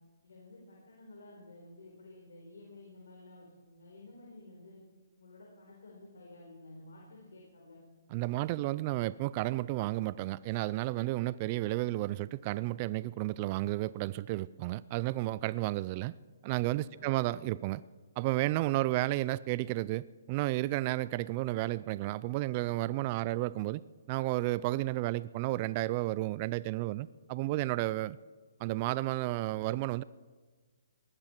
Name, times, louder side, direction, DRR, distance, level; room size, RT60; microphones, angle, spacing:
voice 1, 0.2-4.8 5.2-7.8 16.9-17.2, left 2 dB, 80° left, -2 dB, 4.4 m, -53 dB
voice 2, 8.1-16.1 16.4-17.8 18.2-23.8 24.1-28.2 28.6-30.0, right 18 dB, 35° right, 19 dB, 0.3 m, -32 dB
19.0 x 13.5 x 4.5 m, 1.4 s
hypercardioid pair, 145°, 0 cm